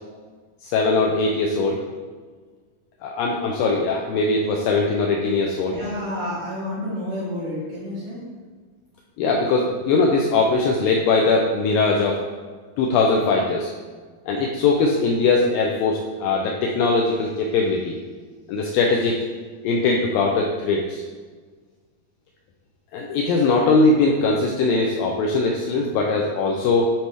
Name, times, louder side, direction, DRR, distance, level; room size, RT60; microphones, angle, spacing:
voice 1, 0.6-1.8 3.0-5.7 9.2-12.2 12.8-13.7 14.3-18.0 18.5-19.2 19.6-21.0 22.9-26.9, left 3 dB, 85° left, 0 dB, 2.0 m, -20 dB
voice 2, 5.7-8.2, left 1 dB, 60° right, -8 dB, 2.8 m, -29 dB
10.5 x 4.6 x 3.3 m, 1.5 s
omnidirectional pair, 4.7 m